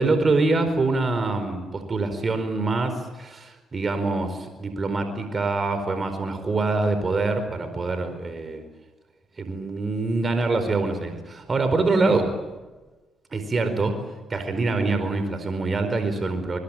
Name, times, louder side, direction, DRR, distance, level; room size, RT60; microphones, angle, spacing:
voice 1, 0.0-8.6 9.4-12.3 13.3-14.0 14.3-16.6, right 3 dB, 40° right, 8 dB, 4.7 m, -25 dB
sound 1, 11.4-13.0, right 2 dB, 20° right, 5.5 m, -36 dB
25.0 x 22.5 x 9.1 m, 1.2 s
supercardioid pair, 55°, 0 cm